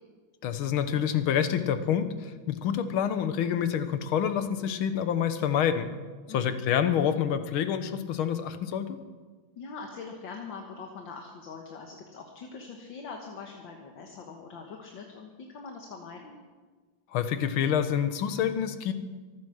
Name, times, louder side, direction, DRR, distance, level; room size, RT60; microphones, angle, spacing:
voice 1, 0.4-5.9 6.3-9.0 17.1-18.9, left 8 dB, 85° left, 10 dB, 1.8 m, -27 dB
voice 2, 6.3-6.6 9.6-16.4, left 4 dB, 65° left, 2 dB, 2.1 m, -43 dB
24.0 x 9.2 x 6.5 m, 1.4 s
omnidirectional pair, 2.2 m